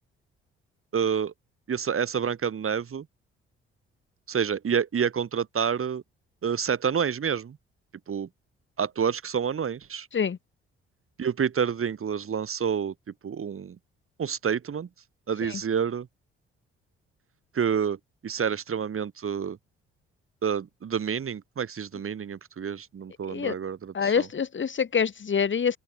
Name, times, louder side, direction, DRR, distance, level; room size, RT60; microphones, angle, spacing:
voice 1, 0.9-1.3 1.7-3.1 4.3-6.0 6.4-7.6 8.1-8.3 8.8-10.1 11.2-12.9 13.2-13.8 14.2-14.9 15.3-16.1 17.5-19.6 20.4-24.3, right 7 dB, 45° right, 3.4 m, -28 dB
voice 2, 23.9-25.8, left 6 dB, 40° left, 1.8 m, -26 dB
open air
hypercardioid pair, 45°, 29 cm